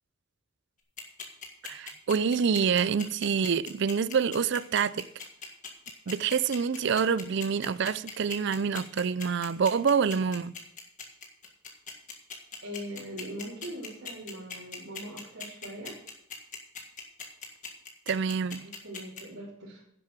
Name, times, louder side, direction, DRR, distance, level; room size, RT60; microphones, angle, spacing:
sound 1, 1.0-19.2, left 6 dB, 35° left, 1.8 m, -40 dB
voice 1, 1.6-5.1 6.1-10.6 18.1-18.7, right 6 dB, 55° right, 0.4 m, -27 dB
voice 2, 12.6-16.0 18.5-19.8, equal, 85° right, 3.3 m, -41 dB
11.0 x 7.3 x 6.3 m
head